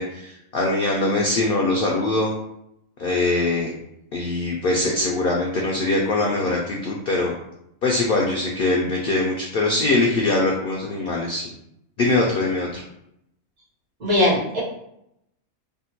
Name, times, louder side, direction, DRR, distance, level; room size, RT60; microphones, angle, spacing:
voice 1, 0.0-2.3 3.0-3.7 4.1-7.3 7.8-11.5 12.0-12.8, left 2 dB, 70° left, -1 dB, 0.5 m, -22 dB
voice 2, 14.0-14.6, left 1 dB, 75° right, -6 dB, 1.8 m, -19 dB
3.6 x 2.1 x 2.8 m, 0.79 s
omnidirectional pair, 1.5 m